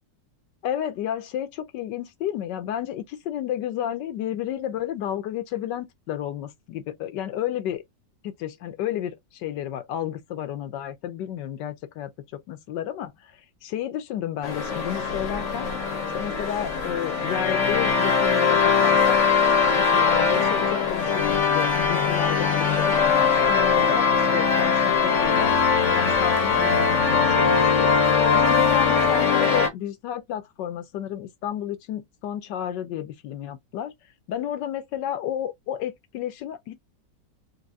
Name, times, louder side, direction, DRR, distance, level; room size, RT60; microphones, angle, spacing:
voice 1, 0.6-7.8 8.2-15.7 16.1-19.2 19.7-25.6 25.9-27.9 28.3-33.9 34.3-36.7, left 11 dB, 75° left, 1.3 m, -31 dB
sound 1, 14.4-29.7, left 6 dB, 50° left, 1.1 m, -21 dB
4.0 x 2.6 x 2.6 m
omnidirectional pair, 2.0 m